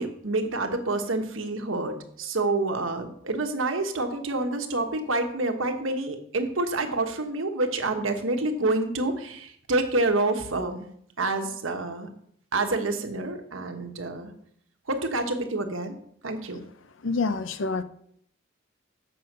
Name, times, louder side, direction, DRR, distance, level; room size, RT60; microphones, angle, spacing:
voice 1, 0.0-10.8 11.2-12.1 12.5-14.3 14.9-16.0 16.2-16.6, right 2 dB, 85° right, 5 dB, 1.2 m, -28 dB
voice 2, 17.0-17.8, left 4 dB, 75° left, 12 dB, 0.7 m, -27 dB
7.7 x 5.6 x 6.6 m, 0.68 s
head